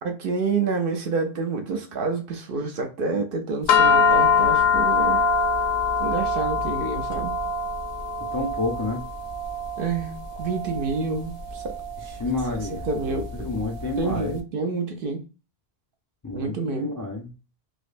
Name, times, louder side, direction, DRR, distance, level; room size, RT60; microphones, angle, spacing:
voice 1, 0.0-5.2 6.0-7.4 9.8-11.7 12.5-13.5 14.0-15.2 16.3-16.9, right 4 dB, 60° right, 0.8 m, -28 dB
sound 1, 3.7-14.2, left 4 dB, 70° left, 0.8 m, -24 dB
voice 2, 8.3-9.0 12.0-14.4 16.2-17.3, left 3 dB, 30° left, 0.4 m, -30 dB
4.8 x 2.1 x 2.5 m
omnidirectional pair, 1.1 m